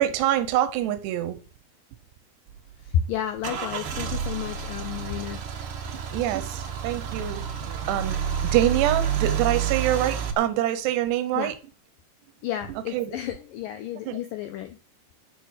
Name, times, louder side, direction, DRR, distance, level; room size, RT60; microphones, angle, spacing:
voice 1, 0.0-1.4 6.1-7.4 7.9-8.2 8.5-11.5 12.7-13.2 14.1-14.2, right 12 dB, 90° right, 10 dB, 3.1 m, -25 dB
Car / Engine starting / Idling, 2.5-10.3, right 8 dB, 60° right, 1.5 m, -29 dB
voice 2, 2.8-5.4 11.4-11.5 12.4-14.8, left 10 dB, 80° left, 8 dB, 2.1 m, -31 dB
10.0 x 8.9 x 6.5 m, 0.37 s
omnidirectional pair, 4.8 m